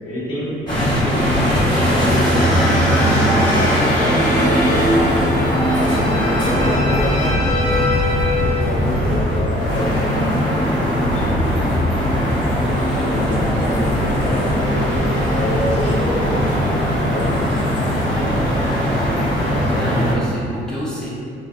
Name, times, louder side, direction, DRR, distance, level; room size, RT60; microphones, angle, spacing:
voice 1, 0.0-5.1 5.9-7.8 8.4-11.8 12.8-14.5 15.3-18.8 19.3-19.8, equal, 75° left, -8 dB, 1.0 m, -28 dB
sound 1, 0.7-20.1, equal, 20° left, 1.1 m, -19 dB
sound 2, 2.5-8.8, left 2 dB, 60° left, 0.6 m, -26 dB
voice 2, 19.6-21.1, right 1 dB, 5° left, -8 dB, 0.7 m, -28 dB
2.5 x 2.2 x 2.3 m, 2.4 s
cardioid pair, 90°, 20 cm